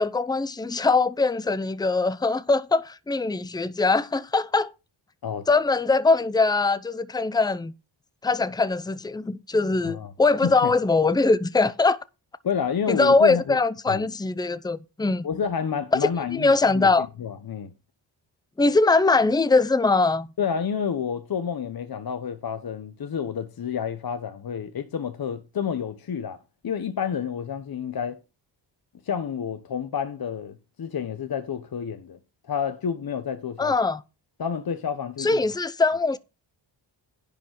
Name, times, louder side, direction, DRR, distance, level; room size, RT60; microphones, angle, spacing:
voice 1, 0.0-4.7 5.5-7.7 8.2-12.0 12.9-15.3 16.3-17.1 18.6-20.3 33.6-34.0 35.2-36.2, left 3 dB, 10° left, 0.7 m, -22 dB
voice 2, 12.4-13.6 13.9-14.1 15.2-17.7 20.4-28.2 29.0-32.2 32.5-33.7 34.4-35.4, left 7 dB, 50° left, 1.1 m, -29 dB
10.5 x 5.3 x 6.5 m
cardioid pair, 100°, 46 cm